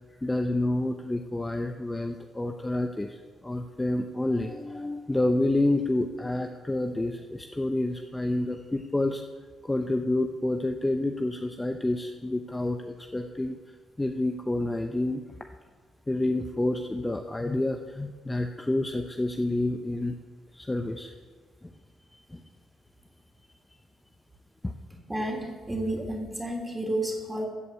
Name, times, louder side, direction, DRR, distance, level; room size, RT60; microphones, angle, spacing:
voice 1, 0.2-9.2 9.6-13.6 14.0-15.2 16.1-20.2 20.5-21.1 21.6-21.7 22.1-22.4 24.6-24.7, left 1 dB, 15° left, 5 dB, 0.7 m, -29 dB
voice 2, 25.1-27.5, right 1 dB, 10° right, 1 dB, 2.8 m, -31 dB
14.0 x 5.1 x 8.3 m, 1.4 s
cardioid pair, 90°, 0 cm